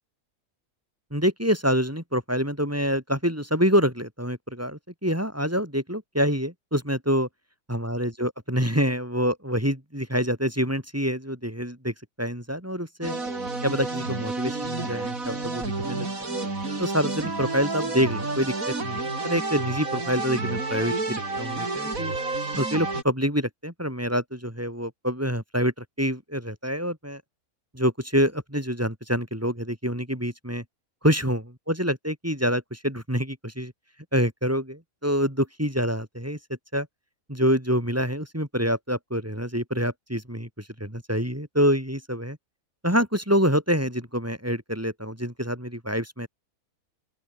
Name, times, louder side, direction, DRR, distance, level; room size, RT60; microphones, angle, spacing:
voice 1, 1.1-7.3 7.7-13.1 13.6-16.4 16.8-18.5 18.8-20.9 21.4-22.1 22.6-27.2 27.7-30.6 31.0-33.7 34.1-36.4 36.7-36.9 37.3-42.4 42.8-46.3, equal, 10° right, 3.7 m, -26 dB
sound 1, 13.0-23.0, right 3 dB, 65° right, 4.5 m, -30 dB
open air
omnidirectional pair, 1.6 m